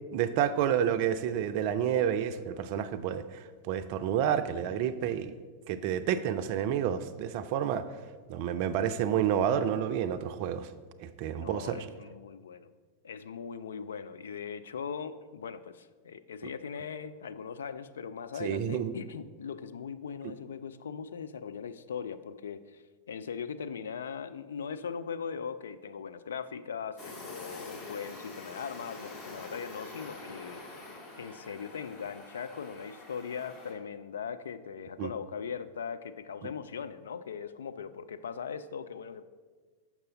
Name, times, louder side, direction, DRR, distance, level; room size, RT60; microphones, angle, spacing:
voice 1, 0.1-5.3 5.7-7.8 8.3-10.7 11.0-11.9 18.4-18.9 20.2-20.3 35.0-35.1, right 9 dB, 45° right, 11 dB, 0.4 m, -29 dB
voice 2, 11.3-12.7 13.0-22.8 23.1-30.6 31.2-39.2, left 6 dB, 65° left, 12 dB, 0.3 m, -40 dB
sound 1, 27.0-33.7, left 3 dB, 35° left, 1.7 m, -46 dB
6.6 x 5.9 x 4.0 m, 1.4 s
figure-of-eight pair, 90°, 0 cm